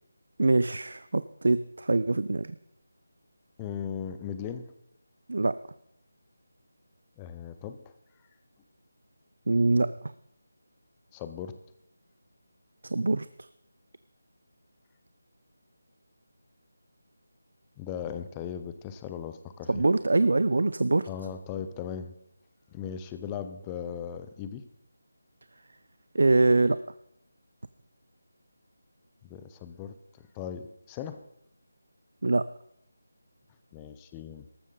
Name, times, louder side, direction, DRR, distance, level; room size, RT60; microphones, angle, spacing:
voice 1, 0.4-2.5 5.3-5.6 9.5-10.1 12.8-13.3 19.7-21.1 26.1-26.8 32.2-32.4, right 2 dB, 60° right, 14 dB, 0.5 m, -24 dB
voice 2, 3.6-4.7 7.2-7.9 11.1-11.6 17.8-19.8 21.1-22.1 22.7-24.7 29.2-31.3 33.7-34.5, left 8 dB, 10° left, 9 dB, 0.4 m, -38 dB
14.0 x 13.0 x 3.8 m, 0.78 s
figure-of-eight pair, 175°, 0 cm